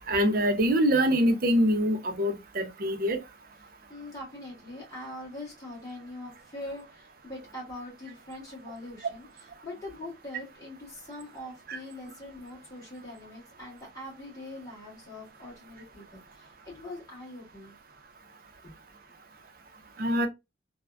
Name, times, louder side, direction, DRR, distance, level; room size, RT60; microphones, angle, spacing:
voice 1, 0.1-3.2 11.7-11.8 20.0-20.3, equal, 50° right, 0.5 m, -24 dB
voice 2, 3.9-17.8 18.6-18.7, left 1 dB, 20° left, 1.7 m, -43 dB
3.3 x 2.1 x 2.3 m
head